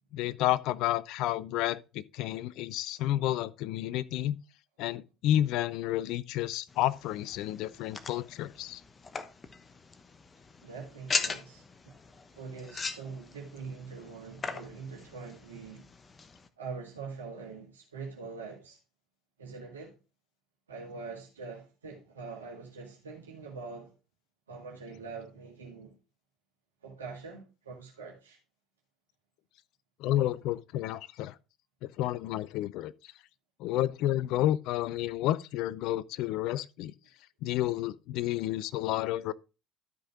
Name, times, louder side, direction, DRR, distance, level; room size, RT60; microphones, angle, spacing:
voice 1, 0.1-4.4 4.8-8.8 30.0-31.3 31.8-32.9 33.6-36.9 37.4-39.3, left 13 dB, 60° left, 0.5 m, -30 dB
sound 1, 6.7-16.5, left 4 dB, 30° left, 1.1 m, -40 dB
voice 2, 10.6-11.9 12.3-15.8 16.6-18.8 19.4-19.9 20.7-23.9 24.5-25.9 26.8-28.4, right 4 dB, 85° right, 1.9 m, -43 dB
12.5 x 5.3 x 3.7 m
hypercardioid pair, 60°, 0 cm